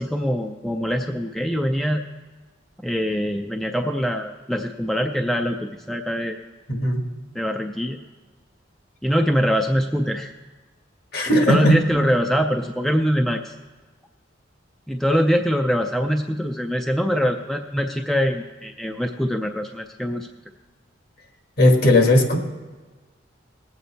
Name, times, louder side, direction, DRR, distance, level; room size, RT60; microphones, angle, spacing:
voice 1, 0.0-2.0 2.8-6.4 7.3-8.0 9.0-10.3 11.5-13.5 14.9-20.3, equal, ahead, 4 dB, 0.4 m, -23 dB
voice 2, 6.7-7.0 11.1-11.8 21.6-22.4, left 1 dB, 50° left, 4 dB, 1.4 m, -17 dB
19.5 x 8.1 x 4.2 m, 1.3 s
head